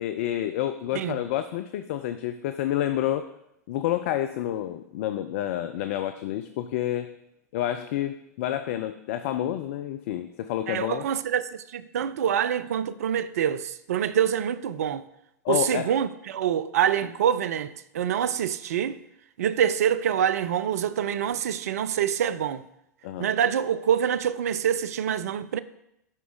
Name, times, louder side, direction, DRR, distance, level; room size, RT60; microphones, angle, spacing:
voice 1, 0.0-3.3 3.7-7.1 7.5-11.1 15.4-15.9 23.0-23.3, left 12 dB, 50° left, 0.4 m, -29 dB
voice 2, 10.7-15.0 15.5-19.0 19.4-22.6 23.2-25.6, right 9 dB, 60° right, 0.4 m, -26 dB
11.5 x 4.7 x 4.0 m
figure-of-eight pair, 90°, 9 cm